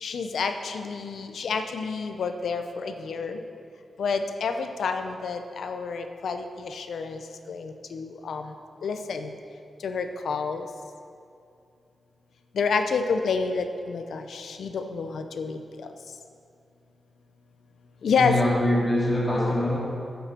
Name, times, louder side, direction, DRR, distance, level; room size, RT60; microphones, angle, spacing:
voice 1, 0.0-3.4 4.0-7.2 7.5-8.5 8.8-9.3 9.8-10.7 12.5-15.6 18.0-18.4, left 5 dB, 75° left, 7 dB, 0.6 m, -29 dB
voice 2, 18.2-19.8, left 1 dB, 20° left, -5 dB, 2.1 m, -23 dB
9.3 x 6.9 x 6.0 m, 2.5 s
wide cardioid pair, 175°, 0 cm